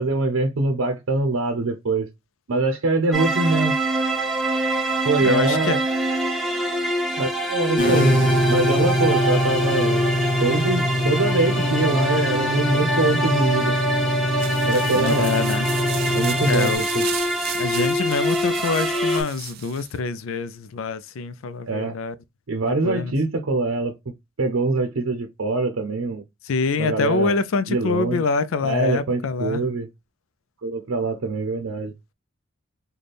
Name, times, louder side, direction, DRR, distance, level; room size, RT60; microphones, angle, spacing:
voice 1, 0.0-2.1 2.5-3.7 5.0-5.8 7.2-8.1 8.5-10.0 10.4-13.7 14.6-15.3 16.1-17.0 21.7-22.0 22.5-23.9 24.4-26.2 26.8-27.4 27.7-28.2 28.6-29.9 30.6-31.9, right 2 dB, 80° right, 0.6 m, -23 dB
sound 1, 3.1-19.2, right 1 dB, ahead, 0.8 m, -24 dB
voice 2, 5.2-5.8 15.0-15.7 16.5-16.8 17.5-22.1 22.8-23.1 26.4-29.7, left 4 dB, 80° left, 0.4 m, -25 dB
sound 2, 7.8-16.8, equal, 40° left, 0.6 m, -23 dB
sound 3, 14.4-20.0, right 12 dB, 45° right, 0.3 m, -35 dB
4.1 x 2.3 x 3.2 m
head